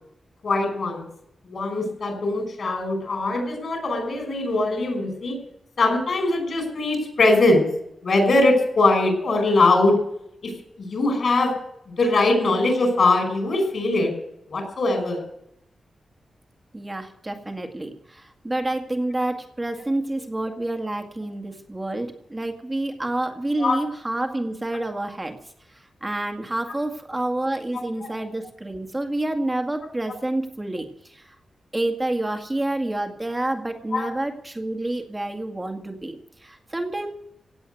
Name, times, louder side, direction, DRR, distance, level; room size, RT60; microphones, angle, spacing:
voice 1, 0.4-1.1 1.5-5.4 5.8-7.7 8.0-10.0 10.4-10.5 10.8-11.5 11.9-14.1 14.5-15.2 23.6-23.8 27.7-28.1 33.9-34.1, left 2 dB, 55° left, 4 dB, 5.3 m, -21 dB
voice 2, 16.7-25.4 25.7-31.4 31.7-37.1, right 1 dB, 15° right, 4 dB, 2.0 m, -28 dB
17.0 x 8.1 x 9.2 m, 0.76 s
wide cardioid pair, 145°, 0 cm